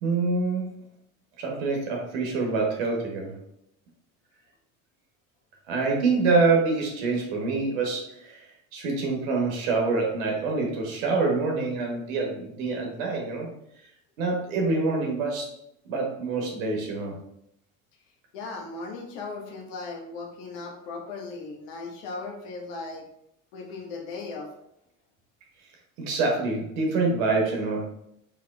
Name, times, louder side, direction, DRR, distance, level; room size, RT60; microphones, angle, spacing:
voice 1, 0.0-0.7 1.4-3.3 5.7-13.5 14.2-15.5 15.9-17.2 26.0-27.9, right 3 dB, 75° right, 0 dB, 1.0 m, -26 dB
voice 2, 18.3-23.1 23.5-24.5, left 3 dB, 75° left, 2 dB, 0.9 m, -37 dB
3.5 x 3.0 x 2.3 m, 0.75 s
hypercardioid pair, 80°, 40 cm